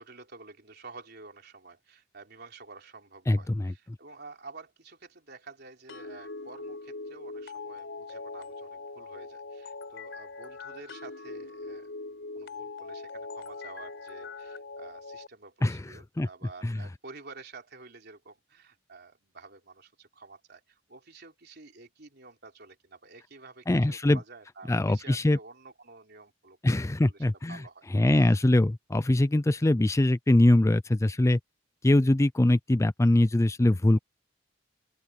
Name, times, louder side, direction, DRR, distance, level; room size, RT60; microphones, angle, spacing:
voice 1, 0.0-26.7 27.0-28.4, right 3 dB, 60° right, 3.7 m, -50 dB
voice 2, 3.3-3.7 15.6-16.3 16.6-16.8 23.7-24.2 24.7-25.4 26.6-27.6 27.9-31.4 31.8-34.0, left 1 dB, 15° left, 0.4 m, -23 dB
sound 1, 5.9-15.3, left 3 dB, 70° left, 4.4 m, -41 dB
open air
head